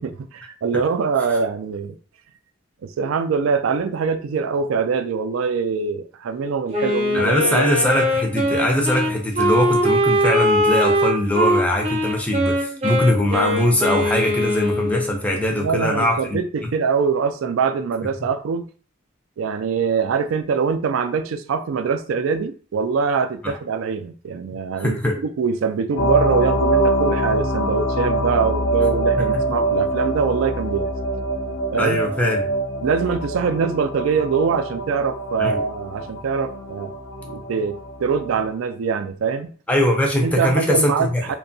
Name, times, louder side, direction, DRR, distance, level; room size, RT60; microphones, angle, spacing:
voice 1, 0.0-2.0 3.0-7.6 15.6-18.7 19.4-25.0 25.4-30.9 31.7-32.0 32.8-36.9 37.2-39.5 40.2-41.3, right 5 dB, 90° right, 0.3 m, -23 dB
Wind instrument woodwind instrument, 6.7-15.1, equal, 30° right, 0.6 m, -21 dB
voice 2, 7.1-16.7 23.4-23.6 24.8-25.2 29.2-29.3 31.8-32.4 35.4-35.6 39.7-41.3, left 1 dB, 5° left, 0.4 m, -21 dB
sound 1, 26.0-38.5, right 1 dB, 80° left, 0.5 m, -24 dB
2.7 x 2.2 x 2.6 m
head